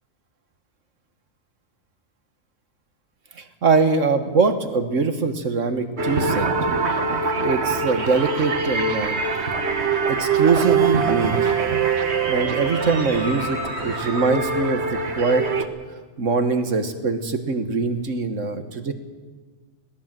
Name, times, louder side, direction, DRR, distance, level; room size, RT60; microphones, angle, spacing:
voice 1, 3.4-6.5 6.9-7.0 7.4-9.2 10.1-11.5 12.3-15.5 16.2-18.9, right 4 dB, 85° right, 8 dB, 1.9 m, -22 dB
sound 1, 6.0-15.6, right 5 dB, 60° right, 1.6 m, -23 dB
sound 2, 7.9-9.7 12.6-14.7, left 1 dB, 90° left, 8.3 m, -36 dB
21.0 x 17.5 x 7.7 m, 1.4 s
omnidirectional pair, 1.3 m